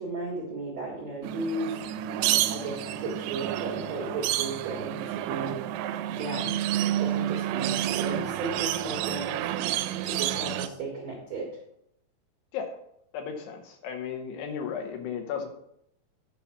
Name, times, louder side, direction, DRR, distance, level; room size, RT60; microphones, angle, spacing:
voice 1, 0.0-1.9 2.5-5.6 6.1-9.5 10.0-11.5, right 2 dB, 60° right, -3 dB, 1.7 m, -35 dB
sound 1, 1.2-10.7, right 12 dB, 85° right, 2.9 m, -29 dB
voice 2, 13.1-15.5, left 7 dB, 75° left, 4 dB, 2.6 m, -34 dB
10.0 x 5.4 x 5.7 m, 0.75 s
omnidirectional pair, 5.3 m